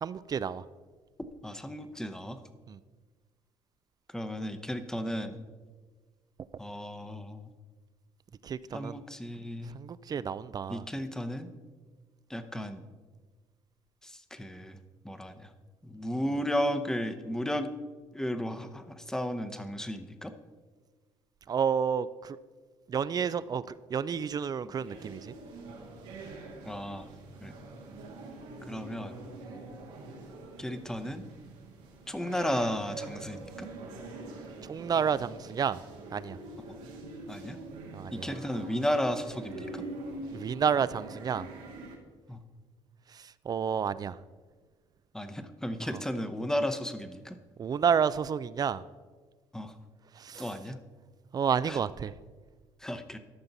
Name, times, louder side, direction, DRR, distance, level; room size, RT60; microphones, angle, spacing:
voice 1, 0.0-0.6 2.7-2.8 8.4-9.0 9.6-10.8 12.5-12.7 21.5-22.4 22.9-25.3 29.5-29.6 34.7-35.8 36.1-36.4 37.9-38.3 40.3-41.5 43.1-44.2 47.6-48.8 50.2-50.6 51.3-52.1, right 7 dB, 35° right, 17 dB, 0.4 m, -30 dB
voice 2, 1.4-2.4 4.1-5.4 6.6-7.5 8.7-9.7 10.7-11.5 12.3-12.9 14.0-14.8 15.0-15.5 15.8-17.7 18.1-20.3 26.6-27.1 27.4-27.5 28.7-29.2 30.6-31.2 32.1-33.7 37.3-37.6 38.1-39.8 42.3-42.4 45.1-47.4 49.5-49.7 50.4-50.8 51.7-51.8 52.8-53.2, equal, 5° left, 9 dB, 0.8 m, -34 dB
sound 1, 24.7-42.0, right 2 dB, 90° right, 1.6 m, -44 dB
13.0 x 5.8 x 4.0 m, 1.4 s
supercardioid pair, 85°, 11 cm